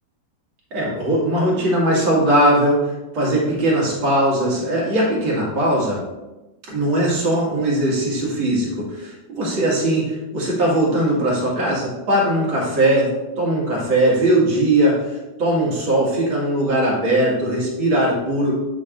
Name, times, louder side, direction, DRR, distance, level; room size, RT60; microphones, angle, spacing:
voice 1, 0.7-6.0 6.7-13.1 13.4-18.5, right 1 dB, 75° right, -5 dB, 2.8 m, -19 dB
7.8 x 6.5 x 2.6 m, 1.1 s
omnidirectional pair, 2.2 m